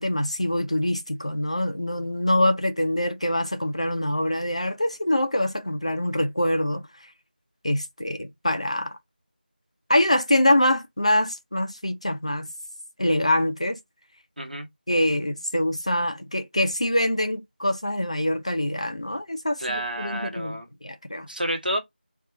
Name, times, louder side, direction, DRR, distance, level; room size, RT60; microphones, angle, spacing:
voice 1, 0.0-6.8 7.6-9.0 9.9-12.5 13.0-13.8 14.9-21.3, left 1 dB, 35° left, 0.4 m, -24 dB
voice 2, 14.4-14.7 19.6-20.7 21.3-21.8, right 1 dB, 55° right, 1.2 m, -29 dB
2.7 x 2.3 x 3.8 m
figure-of-eight pair, 170°, 6 cm